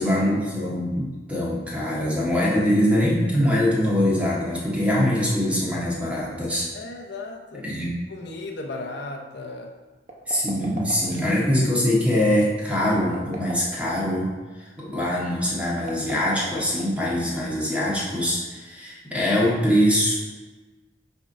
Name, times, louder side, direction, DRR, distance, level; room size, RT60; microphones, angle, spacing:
voice 1, 0.0-6.7 7.6-7.9 10.3-14.3 14.6-20.2, equal, 10° right, -6 dB, 1.7 m, -23 dB
voice 2, 6.7-7.7 8.1-9.7 10.9-11.0, left 2 dB, 65° left, 2 dB, 0.6 m, -36 dB
sound 1, 10.1-11.5 13.0-14.2 15.8-17.3, right 2 dB, 40° right, 0.9 m, -38 dB
7.0 x 3.7 x 5.4 m, 1.3 s
head